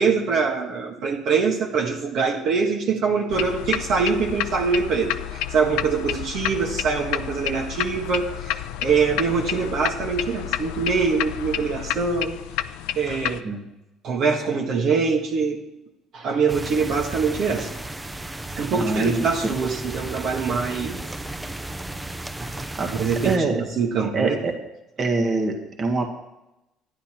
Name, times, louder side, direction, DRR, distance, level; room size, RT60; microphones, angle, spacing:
voice 1, 0.0-12.4 12.9-13.4 14.0-15.6 16.1-17.7 18.6-21.0 22.9-24.4, right 5 dB, 60° right, 0 dB, 1.7 m, -24 dB
sound 1, 3.3-13.4, left 13 dB, 90° left, 0.5 m, -30 dB
sound 2, 16.5-23.4, right 2 dB, 10° right, 0.6 m, -34 dB
voice 2, 18.7-19.5 22.4-22.5 22.8-22.9 23.2-23.6 24.1-24.5 25.0-26.1, right 3 dB, 40° right, 2 dB, 1.8 m, -24 dB
12.0 x 10.5 x 4.5 m, 0.93 s
cardioid pair, 110°, 0 cm